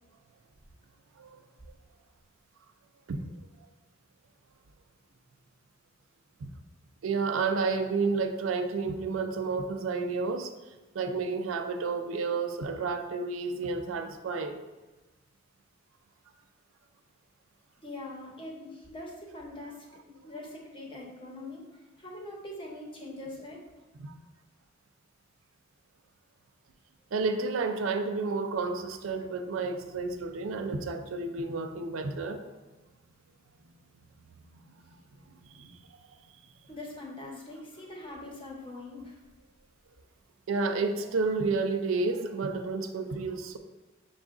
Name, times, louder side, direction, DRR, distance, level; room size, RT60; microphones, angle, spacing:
voice 1, 7.0-10.5 10.9-14.6 24.0-24.1 27.1-32.4 35.5-35.8 40.5-43.6, right 4 dB, 80° right, 7 dB, 0.4 m, -31 dB
voice 2, 17.8-23.6 36.7-39.2, left 2 dB, 25° left, -2 dB, 1.0 m, -43 dB
6.1 x 2.3 x 3.7 m, 1.1 s
head